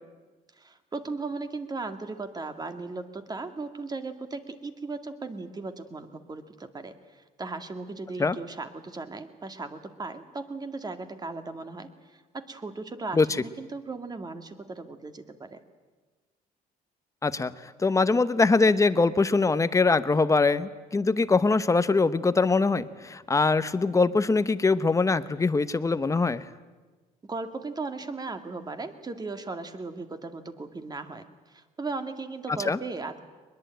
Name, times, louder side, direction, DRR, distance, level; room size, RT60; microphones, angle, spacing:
voice 1, 0.5-15.6 27.2-33.2, right 3 dB, 25° right, 7 dB, 2.1 m, -37 dB
voice 2, 17.8-26.4 32.7-32.8, left 3 dB, 20° left, 13 dB, 1.0 m, -23 dB
22.0 x 21.5 x 9.1 m, 1.3 s
cardioid pair, 110°, 17 cm